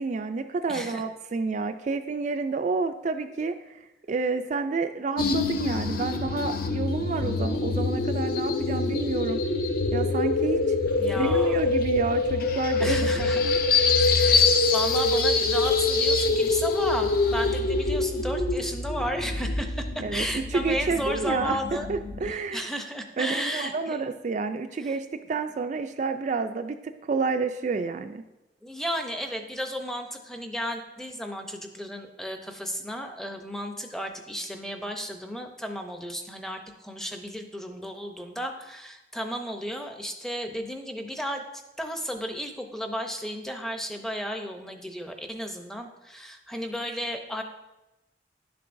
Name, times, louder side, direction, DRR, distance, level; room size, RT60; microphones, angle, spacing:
voice 1, 0.0-3.8 4.1-9.4 9.9-10.6 11.2-13.6 20.0-21.6 21.9-22.6 23.2-28.2, right 4 dB, 40° right, 7 dB, 0.3 m, -29 dB
voice 2, 0.7-1.0 11.0-11.7 12.8-13.5 14.1-21.9 22.2-24.1 24.8-25.0 28.6-41.4 41.8-47.4, equal, 5° left, 4 dB, 0.6 m, -34 dB
sound 1, 5.2-22.3, left 3 dB, 50° left, 0.5 m, -25 dB
11.0 x 6.8 x 2.6 m, 0.99 s
head